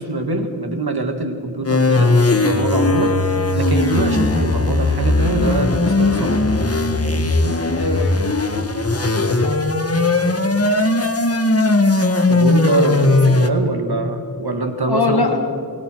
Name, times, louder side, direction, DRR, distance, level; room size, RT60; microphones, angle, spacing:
voice 1, 0.0-2.1 2.4-6.4 6.7-7.6 12.3-15.4, right 2 dB, 80° right, 5 dB, 2.3 m, -24 dB
sound 1, 1.7-13.5, left 2 dB, 40° left, 1.7 m, -18 dB
voice 2, 7.8-8.1 8.9-9.6 14.9-15.4, left 4 dB, 85° left, 3 dB, 2.7 m, -22 dB
28.0 x 21.5 x 4.8 m, 2.6 s
wide cardioid pair, 45°, 38 cm